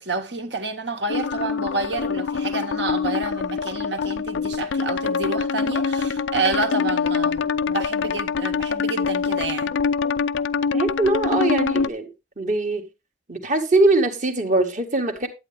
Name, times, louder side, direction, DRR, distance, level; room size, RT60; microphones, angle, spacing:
voice 1, 0.0-9.8, right 3 dB, 70° right, 1.9 m, -29 dB
sound 1, 1.1-11.9, left 5 dB, 85° left, 0.5 m, -24 dB
voice 2, 10.7-12.1 12.4-12.9 13.3-15.3, right 2 dB, 40° right, 1.6 m, -21 dB
11.0 x 8.6 x 3.4 m
head